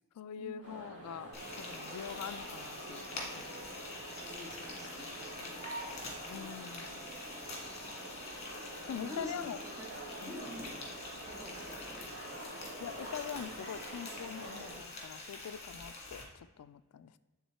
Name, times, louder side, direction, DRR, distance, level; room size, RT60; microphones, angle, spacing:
voice 1, 0.2-1.3 1.6-3.5 4.8-4.9 5.4-5.6 6.3-7.0 8.9-9.6 10.2-10.4 12.8-17.2, left 8 dB, 80° left, 15 dB, 0.3 m, -44 dB
sound 1, 0.6-14.8, right 1 dB, 55° right, 2.2 m, -47 dB
Frying (food), 1.3-16.2, left 2 dB, 30° left, 1.7 m, -46 dB
voice 2, 4.3-6.0 6.3-7.9 8.2-9.9 10.2-10.9 11.2-12.1, equal, 15° right, 0 dB, 1.1 m, -49 dB
8.4 x 3.8 x 4.4 m, 1.2 s
head